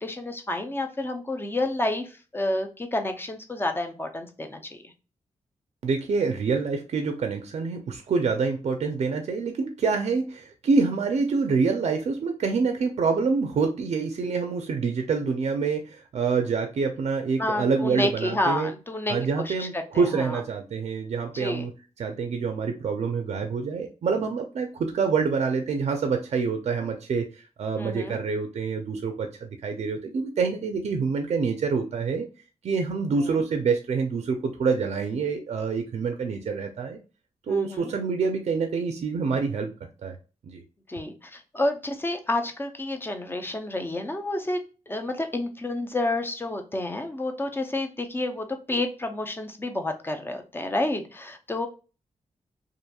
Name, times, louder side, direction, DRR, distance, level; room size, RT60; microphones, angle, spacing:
voice 1, 0.0-4.9 17.4-19.2 19.4-20.4 21.3-21.7 27.8-28.2 33.3-33.4 37.5-37.9 40.9-44.6 44.9-51.7, left 1 dB, 20° left, 5 dB, 0.5 m, -30 dB
voice 2, 5.8-18.7 19.1-21.7 22.0-27.3 27.6-32.3 32.6-37.0 37.5-39.7 40.0-40.2 40.4-40.6, right 5 dB, 65° right, 5 dB, 0.4 m, -26 dB
2.8 x 2.5 x 2.2 m, 0.33 s
wide cardioid pair, 110°, 12 cm